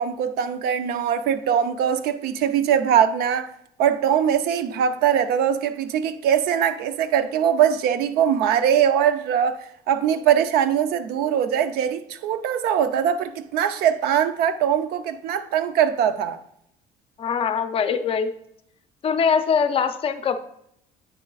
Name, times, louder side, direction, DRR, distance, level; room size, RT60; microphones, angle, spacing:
voice 1, 0.0-3.5 3.8-16.4, right 9 dB, 75° right, 0.6 m, -22 dB
voice 2, 17.2-18.3 19.0-20.4, left 6 dB, 35° left, 0.5 m, -22 dB
8.9 x 6.4 x 2.4 m
cardioid pair, 145°, 16 cm